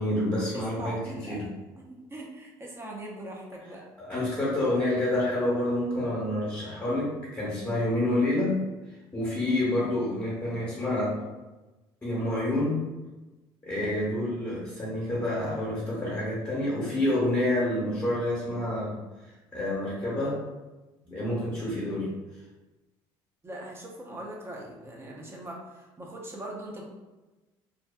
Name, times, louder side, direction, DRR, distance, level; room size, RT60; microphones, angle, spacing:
voice 1, 0.0-1.5 4.0-8.6 9.1-11.2 12.0-12.8 13.6-19.0 19.2-20.4 21.0-22.1, left 1 dB, 20° left, -7 dB, 0.8 m, -28 dB
voice 2, 0.5-1.4 1.8-3.9 7.7-7.9 23.4-26.8, right 1 dB, 25° right, -1 dB, 0.6 m, -41 dB
2.7 x 2.2 x 2.2 m, 1.1 s
supercardioid pair, 95°, 10 cm